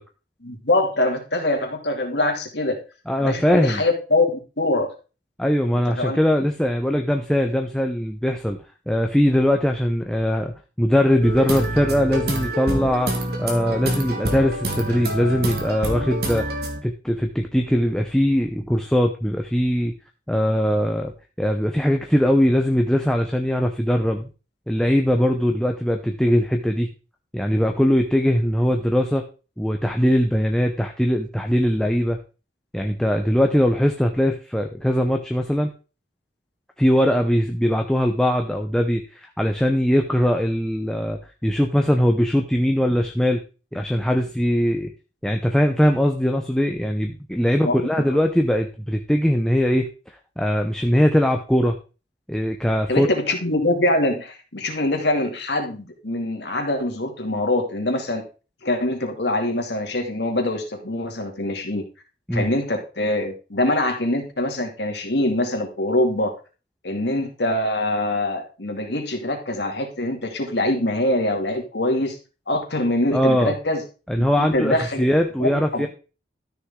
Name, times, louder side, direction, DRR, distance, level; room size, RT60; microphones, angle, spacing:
voice 1, 0.4-2.8 3.2-4.9 6.0-6.2 47.6-48.2 52.9-58.2 58.6-61.8 62.3-66.3 66.8-72.2 72.5-73.8 74.2-75.0 75.4-75.9, left 1 dB, 65° left, 3 dB, 2.5 m, -24 dB
voice 2, 3.1-3.8 5.4-8.6 8.9-13.1 13.4-16.4 16.8-19.9 20.3-21.1 21.4-24.3 24.7-26.9 27.3-29.2 29.6-32.2 32.7-35.7 36.8-43.4 43.7-44.9 45.2-49.9 50.4-51.8 52.3-53.1 62.3-62.5 73.1-73.5 74.1-75.9, equal, 5° left, 3 dB, 0.7 m, -21 dB
sound 1, 11.2-16.8, right 1 dB, 55° right, 2.0 m, -27 dB
13.0 x 6.4 x 3.7 m, 0.34 s
head